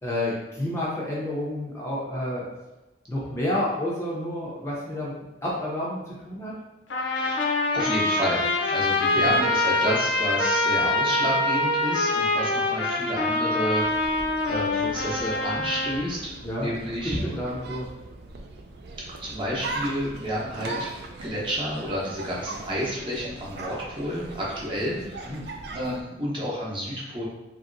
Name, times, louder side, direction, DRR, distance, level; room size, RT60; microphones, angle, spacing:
voice 1, 0.0-2.5 3.1-5.1 5.4-6.5 9.2-9.3 14.8-14.9 16.4-16.7 17.0-17.9 25.3-25.5, left 1 dB, 15° left, -6 dB, 0.4 m, -30 dB
Trumpet, 6.9-16.0, left 2 dB, 80° left, 0.5 m, -25 dB
voice 2, 7.1-16.3 16.6-17.2 19.2-20.9 21.2-25.4 25.7-27.3, equal, 25° right, -5 dB, 0.7 m, -30 dB
sound 1, 13.8-26.0, right 2 dB, 60° right, 0.3 m, -40 dB
2.9 x 2.6 x 2.6 m, 1.0 s
head